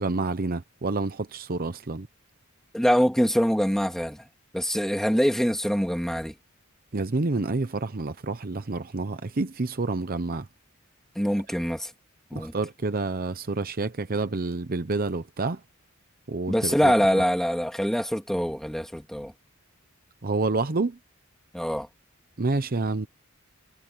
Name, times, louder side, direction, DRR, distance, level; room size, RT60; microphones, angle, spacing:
voice 1, 0.0-2.1 6.9-10.5 12.3-15.6 16.3-17.2 20.2-21.0 22.4-23.1, right 3 dB, 45° right, 0.8 m, -28 dB
voice 2, 2.7-4.2 4.5-6.3 11.1-11.9 12.3-12.5 16.5-19.3 21.5-21.9, equal, ahead, 2.9 m, -24 dB
head